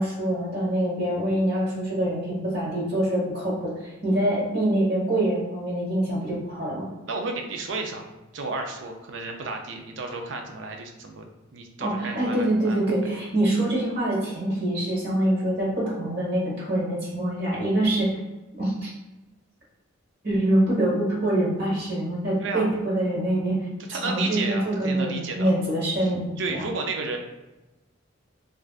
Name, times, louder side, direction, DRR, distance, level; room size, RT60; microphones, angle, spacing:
voice 1, 0.0-6.9 11.8-18.1 18.6-18.9 20.2-23.6 24.0-26.6, right 1 dB, 55° right, -7 dB, 1.3 m, -25 dB
voice 2, 7.1-8.1 8.3-12.9 22.4-22.7 23.9-25.5 26.0-26.1 26.4-27.2, right 3 dB, 70° right, 3 dB, 0.5 m, -32 dB
3.4 x 2.5 x 2.4 m, 1.1 s
head